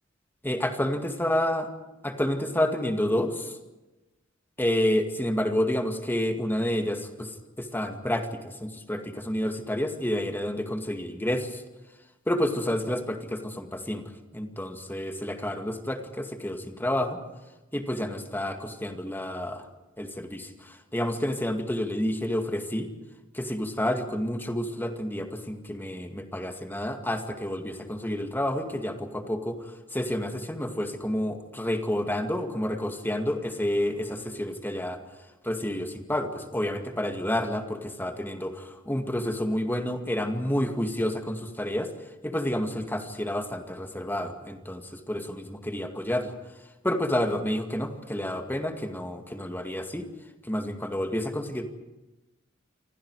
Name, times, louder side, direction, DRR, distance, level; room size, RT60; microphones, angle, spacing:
voice 1, 0.4-1.7 2.0-3.6 4.6-11.6 12.3-17.2 17.7-19.7 20.0-22.9 23.3-35.0 35.4-41.9 42.2-46.3 46.8-50.1 50.4-51.7, left 1 dB, 10° left, 5 dB, 2.2 m, -29 dB
29.0 x 25.0 x 4.9 m, 1.1 s
head